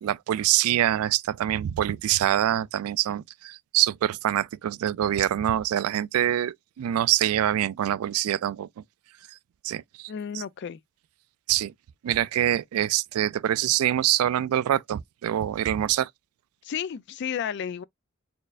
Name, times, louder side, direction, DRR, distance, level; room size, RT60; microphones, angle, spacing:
voice 1, 0.0-8.8 9.6-10.4 11.5-11.7 12.0-16.1, right 11 dB, 80° right, 0.3 m, -25 dB
voice 2, 10.1-10.8 16.6-17.8, left 8 dB, 50° left, 0.3 m, -32 dB
4.3 x 3.2 x 2.4 m
head